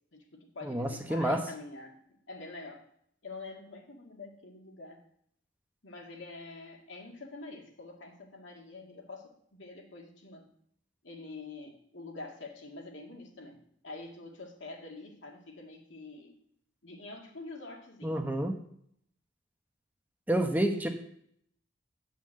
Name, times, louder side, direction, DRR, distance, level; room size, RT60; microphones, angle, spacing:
voice 1, 0.1-2.0 2.3-2.8 3.2-5.0 5.8-10.5 11.0-16.4 16.8-18.2, left 3 dB, 80° left, 1 dB, 2.1 m, -46 dB
voice 2, 0.6-1.4 18.0-18.6 20.3-20.9, right 1 dB, 10° right, 4 dB, 1.0 m, -29 dB
9.7 x 5.6 x 7.6 m, 0.68 s
head